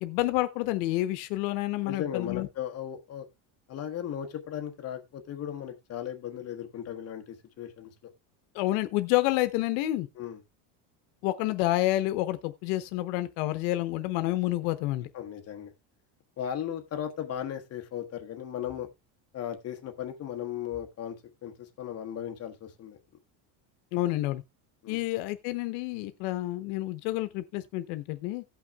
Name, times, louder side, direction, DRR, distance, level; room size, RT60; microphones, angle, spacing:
voice 1, 0.0-2.5 8.5-10.1 11.2-15.1 23.9-24.4 24.9-28.4, left 16 dB, 80° left, 0.9 m, -29 dB
voice 2, 1.8-3.3 3.7-8.1 10.1-10.4 15.1-15.7 16.4-18.9 19.3-21.2 21.4-23.0 24.8-25.0, left 10 dB, 30° left, 1.2 m, -36 dB
17.5 x 5.9 x 2.3 m
cardioid pair, 145°, 47 cm